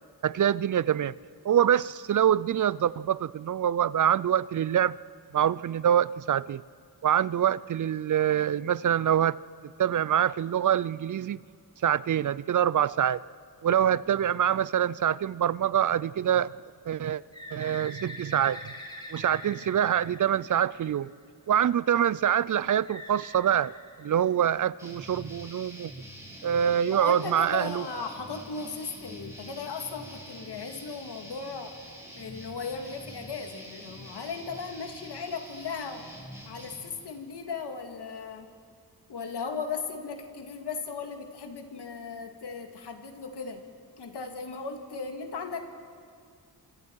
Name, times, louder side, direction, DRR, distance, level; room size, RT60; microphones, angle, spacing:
voice 1, 0.2-1.1 1.4-4.9 5.3-6.6 7.0-9.4 9.8-11.4 11.8-13.2 13.6-16.5 16.9-17.2 17.5-18.6 19.1-21.1 21.5-23.7 24.0-25.9 26.4-27.8, right 9 dB, 50° right, 20 dB, 0.5 m, -25 dB
Bird, 17.3-21.1 22.8-24.6, left 1 dB, 10° left, 4.5 m, -44 dB
sound 1, 24.8-36.8, right 1 dB, 5° right, 5.6 m, -46 dB
voice 2, 26.9-31.7 32.2-36.1 36.5-38.5 39.1-43.6 44.0-45.6, left 5 dB, 85° left, 5 dB, 2.1 m, -37 dB
27.5 x 26.0 x 4.7 m, 2.2 s
cardioid pair, 70°, 40 cm